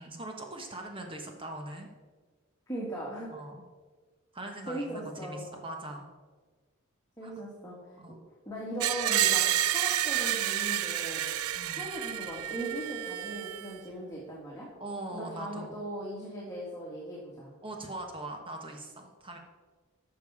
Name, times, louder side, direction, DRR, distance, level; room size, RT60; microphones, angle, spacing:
voice 1, 0.0-1.9 3.3-3.6 4.3-6.1 7.2-7.3 8.0-8.2 11.5-11.9 14.8-15.8 17.6-19.4, right 2 dB, 25° right, 2 dB, 1.1 m, -41 dB
voice 2, 2.7-3.4 4.7-5.5 7.2-8.0 8.5-11.2 11.8-14.7 15.1-17.5, right 1 dB, 15° left, -5 dB, 2.0 m, -39 dB
Screech, 8.8-13.8, right 12 dB, 90° right, 0.4 m, -29 dB
12.5 x 6.9 x 4.8 m, 1.4 s
head